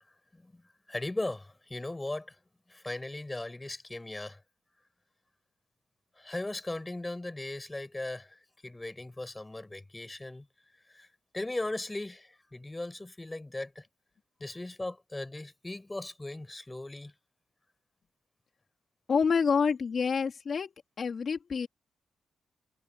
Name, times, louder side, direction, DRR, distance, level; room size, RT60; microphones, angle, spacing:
voice 1, 0.9-2.4 2.7-4.4 6.2-8.4 8.6-10.5 10.9-11.1 11.3-13.9 14.4-17.1, left 2 dB, 15° left, 6.1 m, -38 dB
voice 2, 19.1-21.7, left 5 dB, 50° left, 3.6 m, -28 dB
cardioid pair, 95°, 0 cm